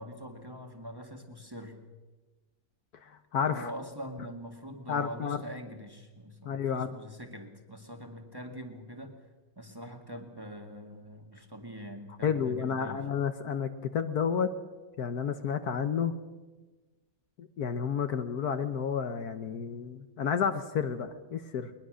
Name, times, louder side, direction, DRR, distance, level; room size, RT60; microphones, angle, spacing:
voice 1, 0.0-1.8 3.4-9.2 9.6-13.1, equal, 15° right, 3 dB, 1.9 m, -43 dB
voice 2, 3.0-3.7 4.9-5.4 6.4-6.9 12.2-14.5 15.0-16.1 17.4-21.7, left 7 dB, 65° left, 9 dB, 1.4 m, -31 dB
21.0 x 21.0 x 6.3 m, 1.2 s
omnidirectional pair, 1.9 m